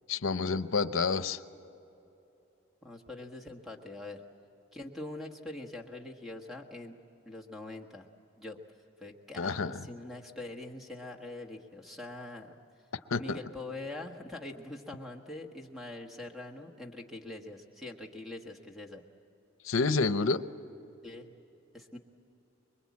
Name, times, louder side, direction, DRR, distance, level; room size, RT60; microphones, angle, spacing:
voice 1, 0.1-1.4 9.4-9.8 13.1-13.4 19.6-20.4, left 4 dB, 80° left, 12 dB, 0.8 m, -29 dB
voice 2, 2.8-4.2 4.7-7.0 7.2-8.1 8.4-8.6 9.0-12.6 13.2-19.0 21.0-21.3 21.7-22.0, left 2 dB, ahead, 2 dB, 1.4 m, -43 dB
25.5 x 22.5 x 8.5 m, 3.0 s
head